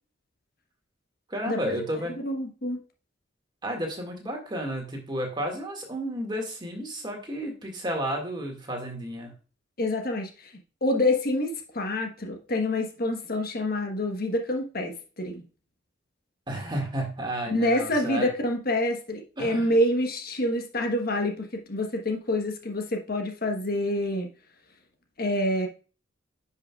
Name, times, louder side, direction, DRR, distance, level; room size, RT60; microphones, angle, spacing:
voice 1, 1.3-2.1 3.6-9.3 16.5-18.3 19.4-19.7, equal, 25° right, 2.0 m, -32 dB
voice 2, 2.1-2.8 9.8-10.5 10.8-15.4 17.5-24.3 25.2-25.7, left 1 dB, 50° left, 1.2 m, -27 dB
10.5 x 5.6 x 2.4 m
head